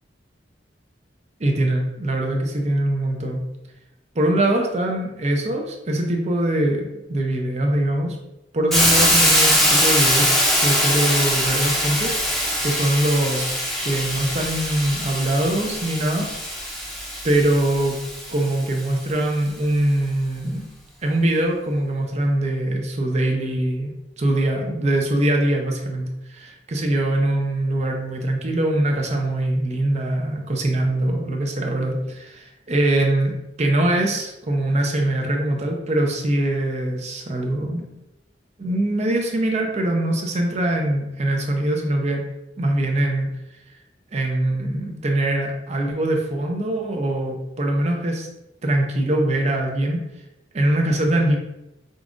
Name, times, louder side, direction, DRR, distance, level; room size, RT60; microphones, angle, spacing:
voice 1, 1.4-3.4 4.1-8.2 8.5-12.1 12.6-13.5 13.8-16.3 17.2-18.0 18.3-20.7 21.0-23.9 24.2-37.9 38.6-42.2 42.6-43.3 44.1-48.3 48.6-50.0 50.5-51.4, right 1 dB, 40° right, 1 dB, 0.5 m, -22 dB
Hiss, 8.7-18.6, equal, ahead, 0.7 m, -22 dB
5.3 x 2.4 x 2.5 m, 0.91 s
head